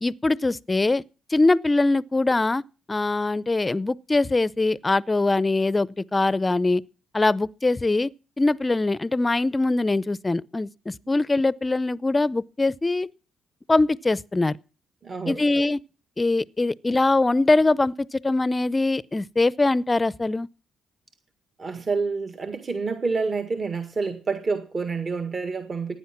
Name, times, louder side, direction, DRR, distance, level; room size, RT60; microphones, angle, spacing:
voice 1, 0.0-1.0 1.3-2.6 2.9-6.8 7.1-8.1 8.4-13.1 13.7-14.6 15.3-15.8 16.2-20.5, left 2 dB, 20° left, 0.6 m, -22 dB
voice 2, 15.0-15.4 21.6-26.0, right 4 dB, 40° right, 1.8 m, -28 dB
15.5 x 10.0 x 5.9 m
cardioid pair, 90°, 0 cm